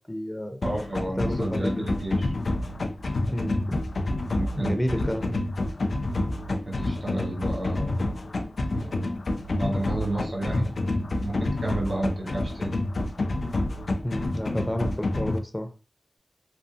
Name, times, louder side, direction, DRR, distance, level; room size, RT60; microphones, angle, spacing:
voice 1, 0.0-0.6 1.2-1.9 3.3-3.8 4.6-5.4 14.0-15.7, left 1 dB, 15° left, 0.5 m, -30 dB
sound 1, 0.6-15.4, left 2 dB, 80° left, 0.3 m, -28 dB
voice 2, 0.6-2.3 4.3-5.1 6.4-8.2 8.7-9.1 9.5-10.7 11.2-12.7, right 1 dB, 65° right, 1.2 m, -32 dB
2.7 x 2.5 x 2.4 m
wide cardioid pair, 50°, 0 cm